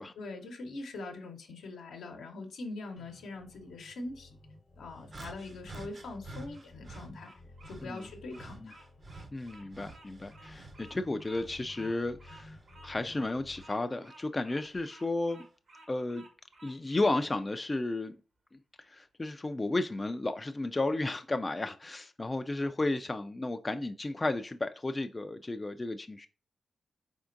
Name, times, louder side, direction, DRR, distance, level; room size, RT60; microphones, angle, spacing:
voice 1, 0.0-4.4 4.8-7.3 7.7-8.8, left 2 dB, 85° left, 0.9 m, -43 dB
sound 1, 3.0-13.6, left 1 dB, 55° left, 0.9 m, -54 dB
sound 2, 5.1-7.1 7.6-10.9 11.3-12.8 13.5-13.7 14.6-14.8, right 2 dB, 50° right, 0.7 m, -49 dB
Bird vocalization bird call bird song, 6.3-17.2, right 2 dB, 70° right, 1.1 m, -56 dB
voice 2, 9.3-12.6 12.8-15.5 15.9-16.3 16.6-18.2 18.8-26.3, left 2 dB, 30° left, 0.3 m, -33 dB
4.2 x 3.6 x 2.5 m
supercardioid pair, 50°, 0 cm